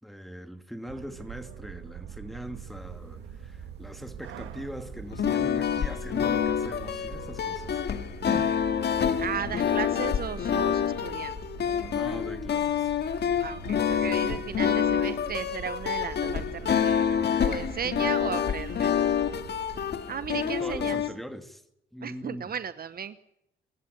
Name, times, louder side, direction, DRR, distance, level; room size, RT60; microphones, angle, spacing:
voice 1, 0.0-7.8 8.3-8.5 11.8-12.9 20.3-21.6 21.9-22.5, equal, ahead, 2.4 m, -41 dB
sound 1, 0.9-19.9, right 10 dB, 85° right, 1.5 m, -44 dB
sound 2, 5.1-21.1, left 8 dB, 55° left, 1.9 m, -27 dB
voice 2, 9.2-11.3 13.4-17.1 17.4-18.9 20.1-21.0 22.0-23.2, right 8 dB, 50° right, 0.9 m, -35 dB
24.5 x 11.5 x 9.4 m
cardioid pair, 90°, 20 cm